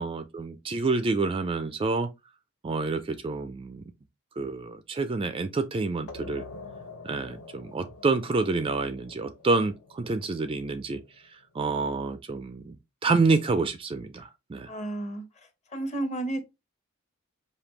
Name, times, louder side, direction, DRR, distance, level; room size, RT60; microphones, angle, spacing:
voice 1, 0.0-2.1 2.6-3.8 4.4-6.4 7.0-11.0 11.5-12.8 13.0-14.7, right 3 dB, 25° right, 0.3 m, -28 dB
sound 1, 6.1-11.4, left 3 dB, 75° left, 1.0 m, -46 dB
voice 2, 14.7-15.2 15.7-16.5, right 2 dB, 35° left, 0.9 m, -32 dB
5.0 x 2.7 x 3.1 m
head